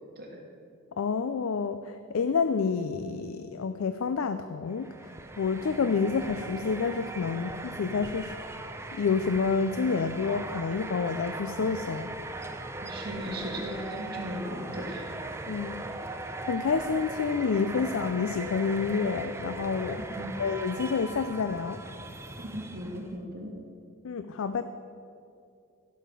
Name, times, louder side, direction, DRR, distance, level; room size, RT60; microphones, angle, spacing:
voice 1, 1.0-4.9 5.4-8.5 8.9-12.1 15.5-16.0 16.4-20.0 20.4-21.8 24.0-24.6, left 5 dB, 75° left, 10 dB, 0.4 m, -28 dB
sound 1, 4.7-23.2, right 2 dB, 10° right, 0.5 m, -39 dB
voice 2, 12.8-15.1 20.2-20.3 22.4-23.5, equal, 45° right, -2 dB, 2.4 m, -37 dB
16.0 x 5.8 x 6.8 m, 2.5 s
head